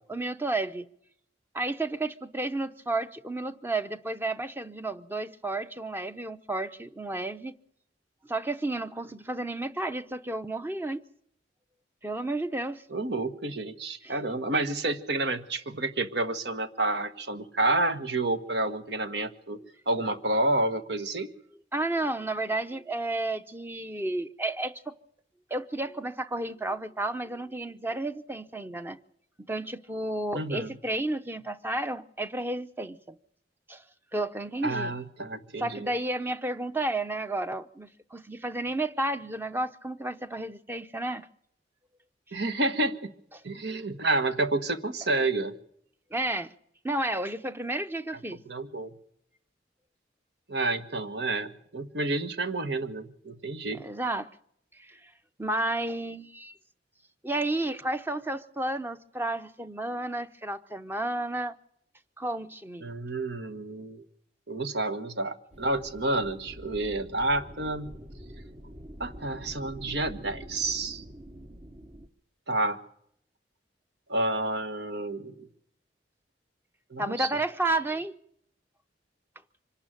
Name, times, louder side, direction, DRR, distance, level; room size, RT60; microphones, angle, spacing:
voice 1, 0.1-0.9 1.5-7.6 8.3-11.0 12.0-12.8 14.0-14.1 21.7-24.9 25.5-29.0 29.5-33.2 33.7-33.8 34.1-34.9 35.6-41.3 43.3-43.4 46.1-46.5 46.8-48.4 53.7-54.3 54.7-55.1 55.4-56.5 57.2-61.6 62.2-62.9 77.0-78.1, right 2 dB, 10° right, 0.8 m, -32 dB
voice 2, 12.9-19.6 19.9-21.3 30.3-30.7 34.6-35.9 42.3-43.1 43.4-45.5 48.4-48.9 50.5-53.8 62.8-64.0 64.5-67.9 69.0-71.0 72.5-72.8 74.1-75.5 76.9-77.3, right 2 dB, 70° right, 1.5 m, -29 dB
sound 1, 65.5-72.1, equal, 35° right, 1.2 m, -45 dB
25.5 x 11.5 x 9.0 m
head